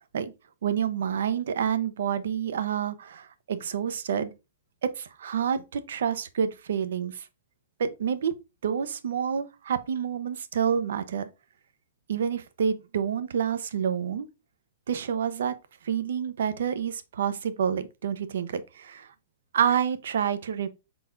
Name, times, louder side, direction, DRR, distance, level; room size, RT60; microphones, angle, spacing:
voice 1, 0.6-4.3 4.8-7.3 7.8-8.3 8.6-11.3 12.1-14.3 14.9-15.5 15.8-19.1 19.5-20.7, right 8 dB, 75° right, 0.6 m, -28 dB
4.5 x 3.8 x 2.5 m
hypercardioid pair, 135°, 0 cm